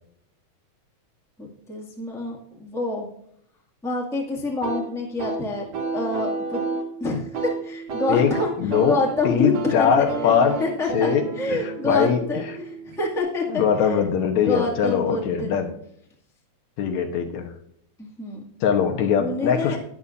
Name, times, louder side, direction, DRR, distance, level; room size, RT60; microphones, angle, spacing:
voice 1, 1.4-3.1 3.8-5.6 5.9-6.6 7.0-8.5 8.8-10.3 10.6-11.1 11.4-14.0 14.4-15.7 18.0-18.4 19.2-19.8, left 2 dB, ahead, -2 dB, 1.4 m, -27 dB
sound 1, 4.6-13.2, right 4 dB, 60° right, 2.5 m, -31 dB
voice 2, 8.6-9.0 9.2-10.6 10.9-12.2 13.5-15.7 16.8-17.5 18.6-19.8, left 7 dB, 75° left, 4 dB, 2.3 m, -21 dB
12.5 x 10.0 x 2.5 m, 0.70 s
omnidirectional pair, 3.3 m